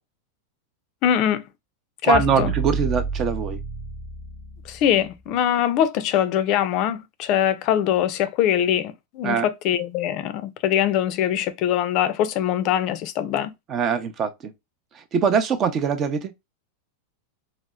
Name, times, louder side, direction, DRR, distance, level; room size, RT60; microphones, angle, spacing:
voice 1, 1.0-1.4 2.0-2.5 4.7-13.5, left 10 dB, 45° left, 0.4 m, -22 dB
voice 2, 2.0-3.6 9.2-9.5 13.7-14.3 15.1-16.3, right 6 dB, 35° right, 0.6 m, -22 dB
sound 1, 2.1-5.2, right 3 dB, 10° right, 0.9 m, -30 dB
4.1 x 2.0 x 2.3 m
hypercardioid pair, 125°, 0 cm